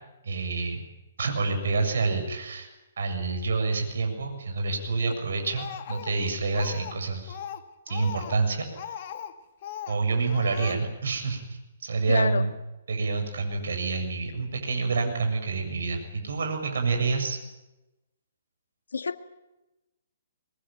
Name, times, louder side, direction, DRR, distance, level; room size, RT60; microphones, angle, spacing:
voice 1, 0.2-0.8 1.2-2.7 3.0-7.4 7.9-8.6 9.9-12.5 12.9-17.4, right 4 dB, 70° right, 3 dB, 7.4 m, -28 dB
Speech, 5.6-7.0 7.3-9.4 9.6-10.0 10.3-10.7, left 9 dB, 45° left, 2.0 m, -39 dB
voice 2, 12.1-12.5 18.9-19.2, left 4 dB, 75° left, 10 dB, 1.8 m, -27 dB
24.0 x 21.5 x 9.2 m, 0.99 s
figure-of-eight pair, 130°, 0 cm